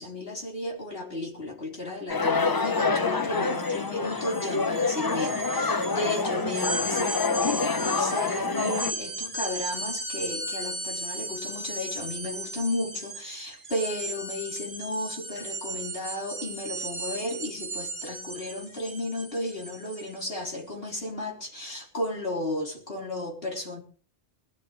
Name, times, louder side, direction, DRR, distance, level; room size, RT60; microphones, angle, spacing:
voice 1, 0.0-23.8, left 1 dB, 60° left, 4.1 m, -34 dB
sound 1, 2.1-8.9, left 4 dB, 25° left, 0.5 m, -27 dB
sound 2, 2.7-2.8 3.1-20.4, right 1 dB, 60° right, 2.4 m, -36 dB
20.5 x 13.0 x 3.3 m
omnidirectional pair, 1.1 m